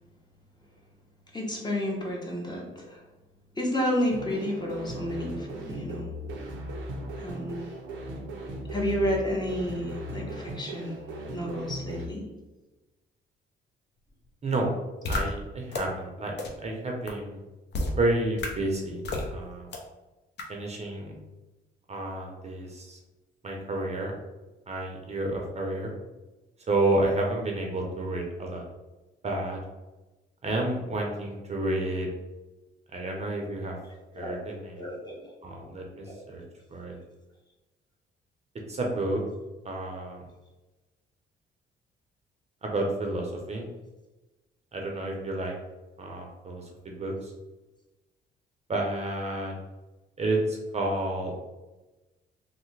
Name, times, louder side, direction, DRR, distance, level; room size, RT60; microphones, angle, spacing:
voice 1, 1.3-3.0 3.5-6.1 7.2-7.7 8.7-10.9 11.3-12.2 34.2-34.4 34.7-35.3 36.1-36.2, equal, 20° left, -1 dB, 0.8 m, -31 dB
sound 1, 4.1-12.1, right 1 dB, 80° right, 0.6 m, -38 dB
sound 2, 15.0-15.2 15.7-15.8 16.4-16.5 17.1-17.2 17.7-17.9 18.4-18.5 19.0-19.2 19.7-19.8 20.4-20.5, left 2 dB, 60° left, 0.6 m, -29 dB
voice 2, 15.1-17.4 18.0-19.0 19.3-19.7 20.5-21.1 21.9-23.0 23.4-24.1 24.7-25.9 26.7-28.6 29.2-29.6 30.4-32.1 32.9-33.8 34.1-34.9 35.4-36.4 36.7-37.0 38.7-39.2 39.6-40.3 42.6-43.7 44.7-45.5 46.0-47.3 48.7-49.6 50.2-51.3, right 2 dB, 35° right, 0 dB, 0.6 m, -30 dB
3.2 x 2.1 x 3.1 m, 1.1 s
cardioid pair, 90°, 20 cm